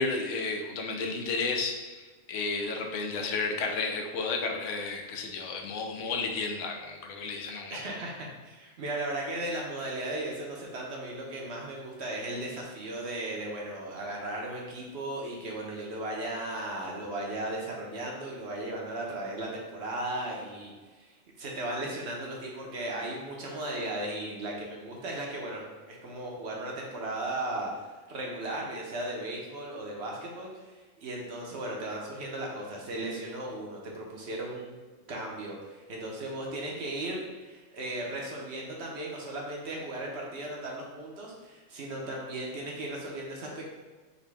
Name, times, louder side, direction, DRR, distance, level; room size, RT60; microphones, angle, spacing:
voice 1, 0.0-7.8, left 4 dB, 75° left, 2 dB, 0.9 m, -32 dB
voice 2, 7.7-20.7 21.0-34.7 35.1-43.7, right 1 dB, 65° right, -1 dB, 1.0 m, -36 dB
3.9 x 2.7 x 3.3 m, 1.3 s
omnidirectional pair, 1.3 m